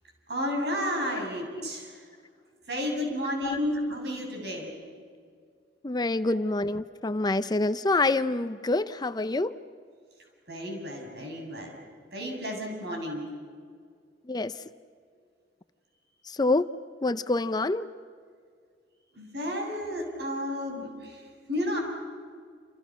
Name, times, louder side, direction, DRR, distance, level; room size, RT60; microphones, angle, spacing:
voice 1, 0.3-2.1 2.7-4.8 10.5-11.8 12.1-13.2 19.1-21.8, left 1 dB, 65° right, 1 dB, 7.4 m, -32 dB
voice 2, 5.8-9.5 14.3-14.5 16.3-16.7 17.0-17.9, left 2 dB, 25° left, 12 dB, 0.6 m, -26 dB
28.5 x 28.0 x 6.2 m, 2.1 s
head